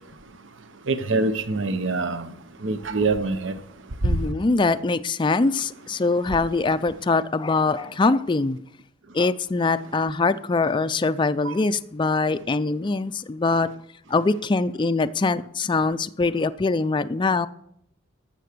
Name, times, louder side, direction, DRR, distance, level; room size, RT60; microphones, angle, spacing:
voice 1, 0.9-2.3 2.6-3.5 11.4-11.5, right 3 dB, 65° right, 0.9 m, -24 dB
voice 2, 4.0-8.6 9.1-13.7 14.1-17.5, left 3 dB, 25° left, 0.4 m, -23 dB
12.5 x 7.6 x 6.7 m
head